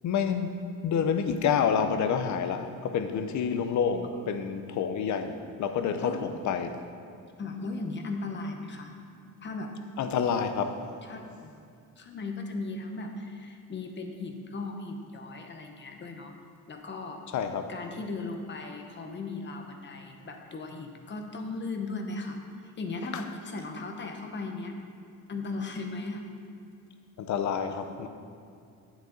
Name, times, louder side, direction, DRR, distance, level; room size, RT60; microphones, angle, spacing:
voice 1, 0.0-0.5 0.8-6.8 10.0-10.8 17.3-17.7 27.2-28.1, left 7 dB, 60° left, 8 dB, 0.7 m, -28 dB
voice 2, 7.4-9.0 9.4-9.7 11.0-11.6 12.0-16.4 16.7-17.2 17.7-24.8 25.3-26.3, left 3 dB, 35° left, 4 dB, 0.9 m, -37 dB
9.2 x 8.0 x 3.9 m, 2.5 s
cardioid pair, 145°, 33 cm